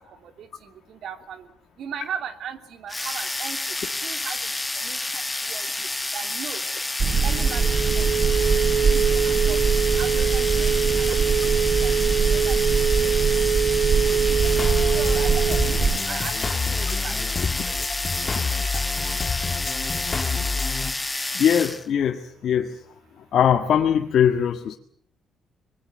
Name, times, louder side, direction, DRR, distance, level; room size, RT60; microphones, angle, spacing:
voice 1, 0.0-1.5 1.8-3.8 4.0-6.6 7.2-8.5 8.8-12.6 13.0-13.4 14.0-14.5 14.9-15.8 16.0-19.1 20.9-21.4 23.1-23.3, right 8 dB, 70° right, 8 dB, 2.9 m, -39 dB
sound 1, 2.9-21.9, left 2 dB, 15° left, 1.0 m, -29 dB
Telephone, 7.0-16.0, right 6 dB, 45° right, 1.1 m, -21 dB
sound 2, 14.4-20.9, left 4 dB, 35° left, 2.2 m, -28 dB
voice 2, 21.3-22.8 23.3-24.8, left 9 dB, 65° left, 4 dB, 1.7 m, -21 dB
24.5 x 21.5 x 8.0 m, 0.63 s
cardioid pair, 90°, 0 cm